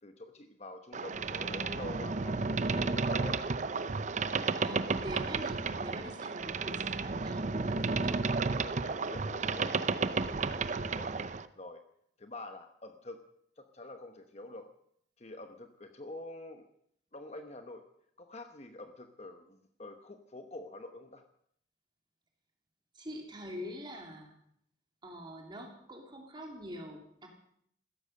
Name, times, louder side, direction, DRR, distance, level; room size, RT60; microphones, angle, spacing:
voice 1, 0.0-3.4 8.6-11.1 11.6-11.8 12.2-13.2 13.6-14.7 15.2-16.6 17.1-17.8 18.2-21.2, left 2 dB, 35° left, 7 dB, 1.0 m, -47 dB
Boat Water vehicle, 0.9-11.5, right 4 dB, 40° right, 0.6 m, -32 dB
voice 2, 4.6-8.3 22.9-24.4 25.0-27.3, equal, 25° right, 2 dB, 2.8 m, -44 dB
15.5 x 13.5 x 6.5 m, 0.70 s
head